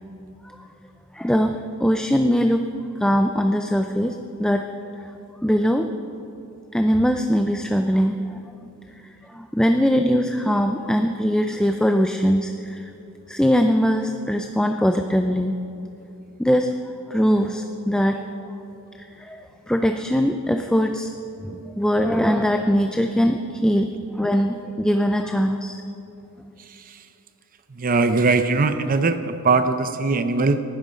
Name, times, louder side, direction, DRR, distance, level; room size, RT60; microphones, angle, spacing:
voice 1, 1.1-2.7 3.0-4.7 5.0-5.1 5.4-5.9 6.7-8.7 9.2-12.9 13.3-15.5 16.4-18.2 19.0-21.1 21.4-23.9 24.1-25.8, equal, 5° left, 6 dB, 0.4 m, -21 dB
voice 2, 26.6-27.1 27.7-30.6, right 3 dB, 40° right, 10 dB, 0.6 m, -21 dB
19.5 x 12.0 x 5.1 m, 2.8 s
head